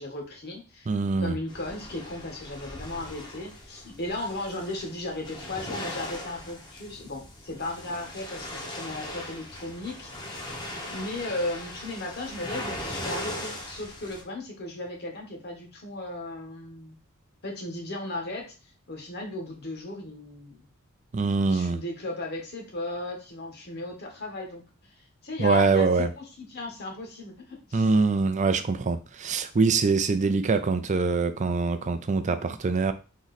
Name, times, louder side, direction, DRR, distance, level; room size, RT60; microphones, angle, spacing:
voice 1, 0.0-0.9 1.2-10.5 10.9-16.9 17.4-18.5 18.9-20.7 21.5-24.6 25.2-27.9, left 2 dB, 50° left, 1.3 m, -36 dB
voice 2, 0.9-1.4 21.1-21.8 25.4-26.1 27.7-32.9, right 4 dB, 35° right, 0.4 m, -24 dB
sound 1, 1.5-14.2, left 1 dB, 20° left, 0.9 m, -39 dB
3.7 x 3.0 x 4.1 m
head